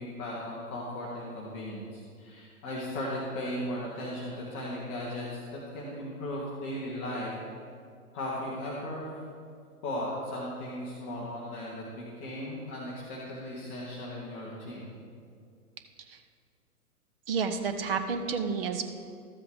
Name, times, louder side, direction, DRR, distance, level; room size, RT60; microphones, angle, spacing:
voice 1, 0.0-5.4 5.7-7.3 8.1-9.2 9.8-14.9, left 1 dB, 10° left, -7 dB, 0.4 m, -36 dB
voice 2, 17.3-18.8, right 5 dB, 40° right, 8 dB, 0.7 m, -30 dB
13.0 x 7.6 x 3.5 m, 2.3 s
figure-of-eight pair, 120°, 45 cm